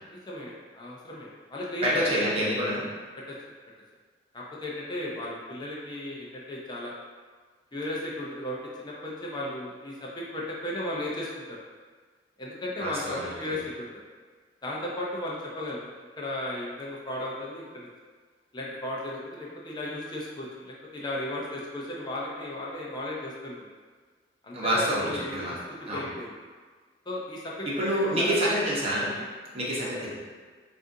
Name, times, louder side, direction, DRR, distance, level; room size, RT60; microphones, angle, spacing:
voice 1, 0.1-2.4 3.3-3.4 4.3-6.9 7.7-11.6 12.4-13.9 14.6-17.6 18.5-23.7 24.4-25.6 25.9-26.3 27.1-28.4 29.2-29.3, left 1 dB, 25° left, -5 dB, 0.6 m, -35 dB
voice 2, 1.8-2.8 12.8-13.3 24.5-25.5 25.8-26.1 27.8-29.1 29.5-30.1, equal, 35° right, -6 dB, 1.0 m, -27 dB
6.1 x 2.6 x 2.6 m, 1.5 s
head